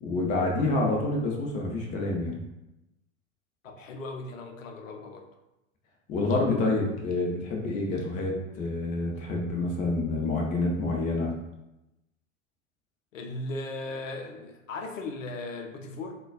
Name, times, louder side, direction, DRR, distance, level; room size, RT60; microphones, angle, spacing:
voice 1, 0.0-2.4 6.1-11.3, left 2 dB, 20° left, -1 dB, 0.4 m, -28 dB
voice 2, 3.6-5.3 13.1-16.2, left 2 dB, 75° left, 4 dB, 0.6 m, -37 dB
3.8 x 2.2 x 2.3 m, 0.95 s
figure-of-eight pair, 90°, 39 cm